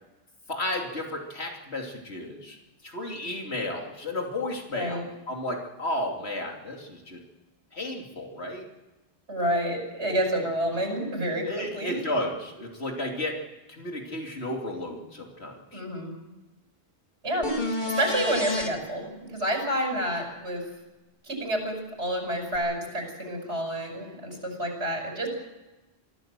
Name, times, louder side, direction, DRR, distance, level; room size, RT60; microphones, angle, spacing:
voice 1, 0.5-2.6 2.8-7.2 7.7-8.7 11.4-13.4 13.7-15.8, left 1 dB, 75° left, 1 dB, 3.3 m, -33 dB
voice 2, 4.7-5.0 9.3-12.0 15.7-16.1 17.2-17.5 17.9-20.6 21.2-25.3, right 1 dB, 90° right, 2 dB, 6.2 m, -29 dB
sound 1, 17.4-18.7 22.5-22.6, left 2 dB, 45° left, 2.5 m, -29 dB
23.5 x 15.0 x 7.5 m, 1.1 s
omnidirectional pair, 1.1 m